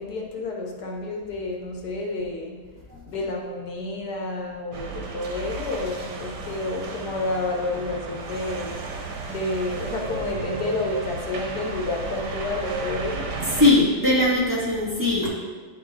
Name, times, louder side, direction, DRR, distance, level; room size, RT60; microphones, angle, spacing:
voice 1, 0.0-2.6 3.1-8.8 9.3-13.3, left 2 dB, 75° left, 0 dB, 1.5 m, -30 dB
sound 1, 4.7-13.7, right 3 dB, 85° right, 1.5 m, -33 dB
voice 2, 13.6-15.3, left 2 dB, 10° right, -9 dB, 2.1 m, -19 dB
9.9 x 3.7 x 3.7 m, 1.4 s
omnidirectional pair, 1.8 m